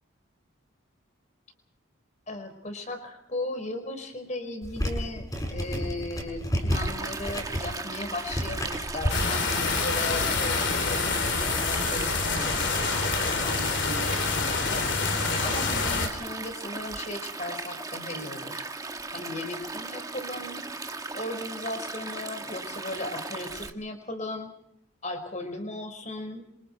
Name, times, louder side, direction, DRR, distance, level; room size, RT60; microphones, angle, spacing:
voice 1, 2.3-12.7 13.0-14.9 15.4-18.6 19.1-20.6 21.1-24.5 25.0-26.4, left 2 dB, 35° left, 7 dB, 5.0 m, -37 dB
sound 1, 4.6-9.3, equal, 15° left, 6.6 m, -31 dB
Stream, 6.7-23.7, right 3 dB, 15° right, 1.4 m, -37 dB
sound 2, 9.1-16.1, left 4 dB, 55° left, 3.6 m, -27 dB
28.0 x 26.5 x 4.7 m, 0.74 s
head